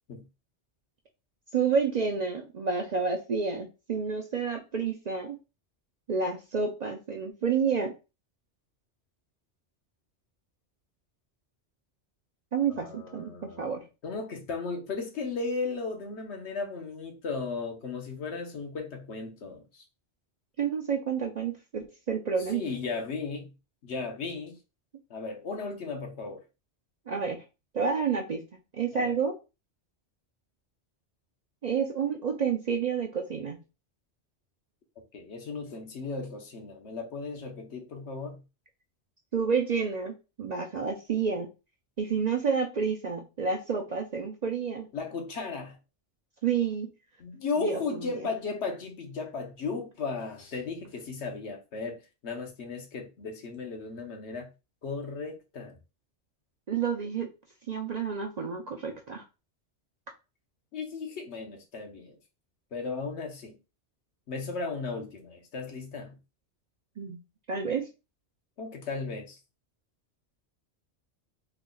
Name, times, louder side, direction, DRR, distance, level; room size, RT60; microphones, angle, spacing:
voice 1, 1.5-5.4 6.1-7.9 12.5-13.3 13.6-13.8 20.6-22.6 27.1-27.4 27.7-28.4 28.7-29.3 31.6-33.6 39.3-41.5 42.0-44.9 46.4-46.9 47.6-47.8 48.1-48.2 56.7-57.3 57.7-59.2 67.0-67.2 67.5-67.9, right 6 dB, 50° right, 0.5 m, -29 dB
voice 2, 12.7-13.7 14.0-19.8 22.5-23.5 23.8-24.6 25.1-26.4 28.9-29.2 35.1-38.4 44.9-45.8 47.2-54.5 54.8-55.7 60.7-62.2 62.7-63.6 64.3-66.2 68.6-69.4, left 4 dB, 75° left, 1.1 m, -35 dB
3.4 x 2.2 x 3.8 m
omnidirectional pair, 1.2 m